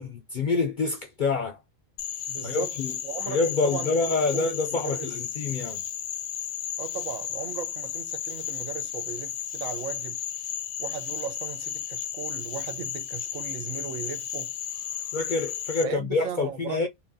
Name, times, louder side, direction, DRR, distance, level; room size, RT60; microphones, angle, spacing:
voice 1, 0.0-1.6 2.4-2.9 3.2-5.8 15.1-16.9, left 4 dB, 60° left, 0.5 m, -27 dB
Frog, 2.0-15.8, left 10 dB, 80° left, 1.0 m, -34 dB
voice 2, 2.3-2.7 3.0-5.1 6.8-10.2 10.8-14.5 15.8-16.9, right 8 dB, 85° right, 1.0 m, -37 dB
5.5 x 2.2 x 2.6 m
omnidirectional pair, 1.3 m